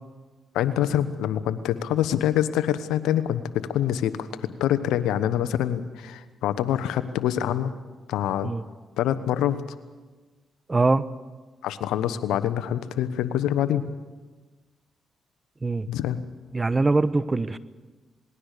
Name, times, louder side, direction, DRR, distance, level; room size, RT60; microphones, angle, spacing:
voice 1, 0.5-7.7 8.1-8.5 9.0-9.6 11.6-13.8 15.9-16.2, left 11 dB, 85° left, 12 dB, 1.2 m, -25 dB
voice 2, 10.7-11.1 15.6-15.9 16.5-17.6, right 3 dB, 30° right, 15 dB, 1.1 m, -22 dB
27.0 x 20.5 x 6.8 m, 1.3 s
supercardioid pair, 50°, 0 cm